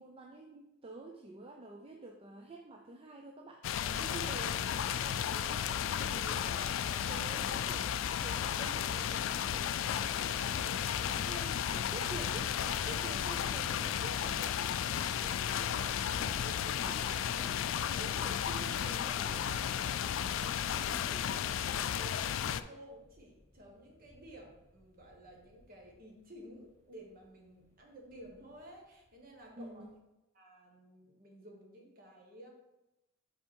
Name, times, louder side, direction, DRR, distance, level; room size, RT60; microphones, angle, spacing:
voice 1, 0.0-6.6 7.1-10.5 10.8-21.4 29.5-29.9, right 3 dB, 30° right, 2 dB, 0.5 m, -50 dB
sound 1, 3.6-22.6, left 9 dB, 70° left, 0.3 m, -34 dB
voice 2, 21.6-29.8 30.3-32.5, right 1 dB, 45° right, 1 dB, 1.4 m, -53 dB
sound 2, 22.7-30.0, left 1 dB, 20° left, 1.6 m, -57 dB
5.6 x 4.5 x 4.6 m, 0.93 s
head